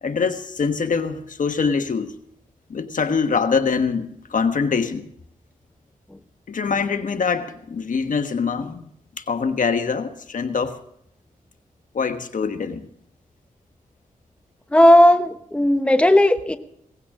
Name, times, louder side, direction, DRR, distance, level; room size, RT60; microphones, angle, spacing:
voice 1, 0.0-2.1 2.7-5.0 6.5-8.9 9.2-10.8 11.9-12.9, left 5 dB, 65° left, 1.3 m, -24 dB
voice 2, 14.7-16.6, left 1 dB, 10° left, 1.0 m, -15 dB
17.5 x 15.5 x 3.7 m
cardioid pair, 60°, 14 cm